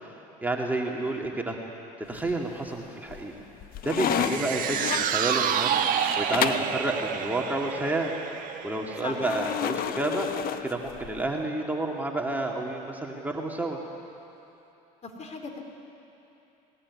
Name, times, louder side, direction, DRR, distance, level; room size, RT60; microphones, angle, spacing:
voice 1, 0.0-1.6 2.1-3.3 3.8-5.8 6.2-8.1 8.6-10.3 10.6-13.8, right 2 dB, 10° right, 0 dB, 2.5 m, -30 dB
sound 1, 2.1-2.7 3.1-6.8 9.2-11.3, left 10 dB, 55° left, 1.0 m, -31 dB
sound 2, 3.9-10.4 10.7-10.8, right 8 dB, 50° right, 1.9 m, -30 dB
voice 2, 15.0-15.6, left 4 dB, 40° left, 3 dB, 4.2 m, -38 dB
20.0 x 20.0 x 9.8 m, 2.8 s
supercardioid pair, 85°, 18 cm